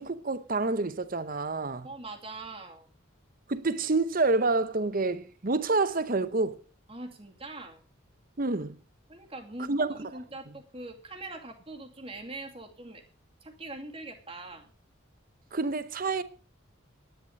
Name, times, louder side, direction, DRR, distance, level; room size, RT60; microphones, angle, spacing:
voice 1, 0.0-1.9 3.5-6.6 8.4-8.8 9.7-9.9 15.5-16.2, right 3 dB, 45° right, 0.8 m, -28 dB
voice 2, 1.8-2.9 6.9-7.8 9.1-9.9 10.1-13.0 13.4-14.7, right 2 dB, 30° right, 2.4 m, -42 dB
11.0 x 10.5 x 6.4 m
head